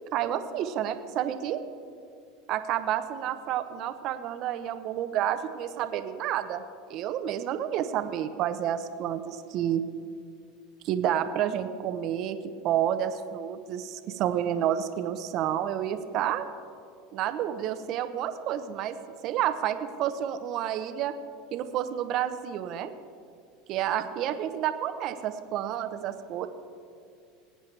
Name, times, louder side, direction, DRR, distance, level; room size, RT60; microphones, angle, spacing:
voice 1, 0.1-1.6 2.5-6.6 6.9-9.8 10.8-12.4 12.6-16.5 17.1-19.0 19.2-21.1 21.5-22.9 23.7-26.5, right 10 dB, 55° right, 10 dB, 0.8 m, -30 dB
20.5 x 9.0 x 3.3 m, 2.3 s
supercardioid pair, 105°, 0 cm